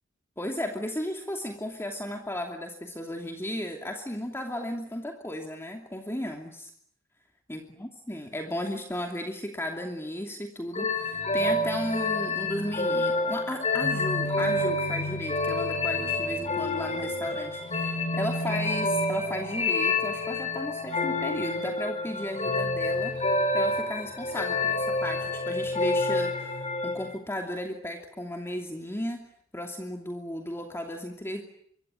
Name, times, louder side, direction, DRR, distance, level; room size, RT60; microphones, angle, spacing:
voice 1, 0.4-6.7 7.5-23.2 23.5-29.3 29.5-31.4, left 1 dB, 10° left, 3 dB, 2.7 m, -35 dB
sound 1, 10.7-27.2, left 2 dB, 30° left, 3.7 m, -28 dB
26.0 x 22.5 x 9.3 m, 0.68 s
head